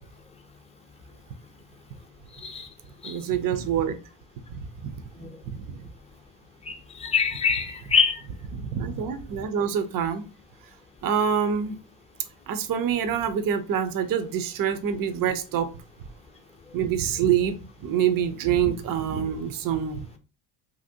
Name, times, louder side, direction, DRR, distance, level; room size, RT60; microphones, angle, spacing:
voice 1, 3.0-4.0 4.8-4.9 5.7-5.8 8.5-10.2 11.0-11.7 12.5-15.7 16.7-20.1, right 8 dB, 45° right, 0.6 m, -26 dB
voice 2, 6.6-8.2, left 6 dB, 15° left, 0.5 m, -25 dB
2.8 x 2.7 x 2.7 m
cardioid pair, 85°, 48 cm